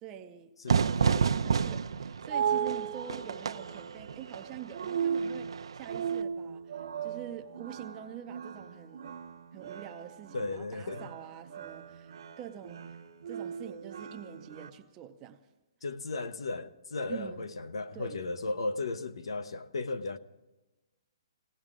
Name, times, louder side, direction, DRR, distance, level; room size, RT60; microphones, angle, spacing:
voice 1, 0.0-0.5 1.0-9.1 9.5-13.0 13.3-15.4 17.1-17.5 17.9-18.2, right 10 dB, 15° right, 0.5 m, -45 dB
voice 2, 0.6-1.2 10.3-11.1 15.8-20.2, left 3 dB, 80° left, 0.9 m, -35 dB
Fire / Fireworks, 0.7-6.2, right 6 dB, 70° right, 0.6 m, -31 dB
sound 1, 1.8-14.7, right 7 dB, 50° right, 1.0 m, -37 dB
21.0 x 17.5 x 3.7 m
hypercardioid pair, 180°, 3 cm